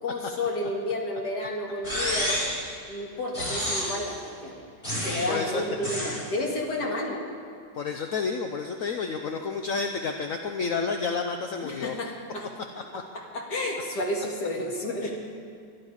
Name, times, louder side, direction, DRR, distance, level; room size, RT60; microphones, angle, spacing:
voice 1, 0.0-2.4 2.9-4.6 5.0-7.2 11.6-12.5 13.1-15.1, left 1 dB, 75° left, 0 dB, 2.7 m, -31 dB
sound 1, 1.8-2.6 3.3-4.1 4.8-5.4 5.8-6.2, equal, 30° left, 4.6 m, -29 dB
voice 2, 5.3-5.6 6.1-6.2 6.8-6.9 7.8-11.9 15.0-15.1, left 5 dB, 60° left, 5 dB, 1.1 m, -30 dB
22.5 x 11.5 x 4.9 m, 2.4 s
omnidirectional pair, 1.8 m